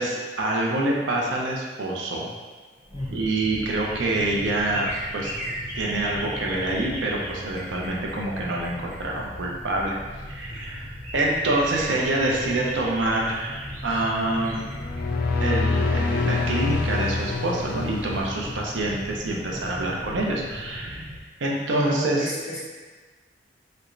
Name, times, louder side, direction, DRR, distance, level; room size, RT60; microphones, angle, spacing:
voice 1, 0.0-2.3 3.1-5.3 5.7-10.0 10.3-10.9 11.1-14.6 15.4-21.1 21.4-22.3, right 2 dB, 80° right, -2 dB, 0.6 m, -26 dB
sound 1, 2.7-9.5 10.1-10.2 10.4-16.2 16.5-16.6, equal, 45° right, 0.8 m, -39 dB
sound 2, 2.8-21.2, equal, 10° right, 0.5 m, -39 dB
voice 2, 2.9-3.2 21.7-22.6, equal, 35° left, -9 dB, 1.4 m, -32 dB
sound 3, 14.7-19.0, left 3 dB, 55° left, 0.3 m, -26 dB
3.3 x 3.0 x 2.5 m, 1.3 s
head